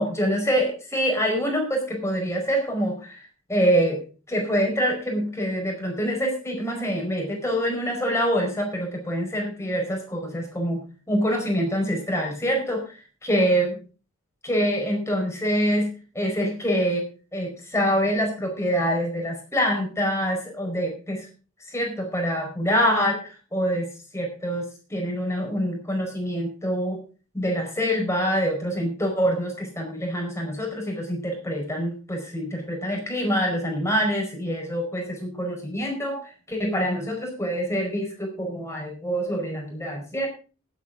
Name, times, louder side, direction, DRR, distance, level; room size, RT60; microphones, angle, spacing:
voice 1, 0.0-4.0 4.3-12.9 13.2-13.7 14.4-17.1 17.3-21.3 21.7-27.0 27.3-40.3, equal, 15° left, 1 dB, 4.8 m, -25 dB
18.5 x 8.6 x 3.8 m, 0.35 s
head